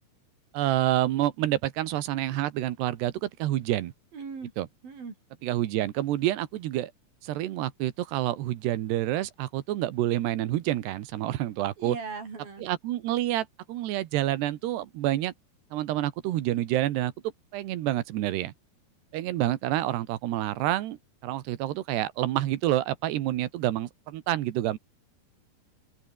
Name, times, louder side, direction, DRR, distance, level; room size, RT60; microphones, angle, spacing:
voice 1, 0.5-3.9 4.6-4.7 5.4-6.9 7.2-12.0 12.6-15.3 15.7-17.1 17.5-18.5 19.1-21.0 21.2-24.8, right 14 dB, 80° right, 3.4 m, -28 dB
voice 2, 4.1-4.5 4.8-5.1 11.8-12.7, right 5 dB, 60° right, 7.1 m, -38 dB
open air
omnidirectional pair, 4.8 m